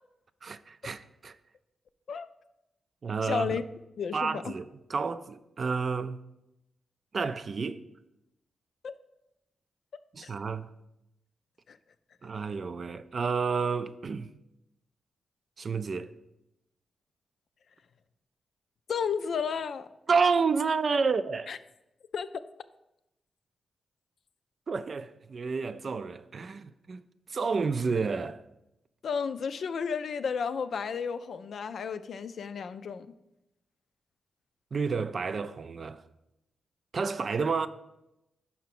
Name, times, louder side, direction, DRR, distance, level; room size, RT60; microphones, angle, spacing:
voice 1, 0.4-1.4 3.0-3.6 4.1-6.2 7.1-7.8 10.1-10.7 12.2-14.3 15.6-16.1 20.1-21.5 24.7-27.0 27.3-28.4 34.7-36.0 36.9-37.7, right 5 dB, 55° right, 0.4 m, -30 dB
voice 2, 3.2-3.6 4.0-4.5 8.8-8.9 10.2-10.3 11.7-11.8 18.9-19.9 21.5-21.6 22.1-22.3 29.0-33.1, left 6 dB, 75° left, 0.4 m, -32 dB
5.6 x 4.7 x 5.9 m
cardioid pair, 55°, 0 cm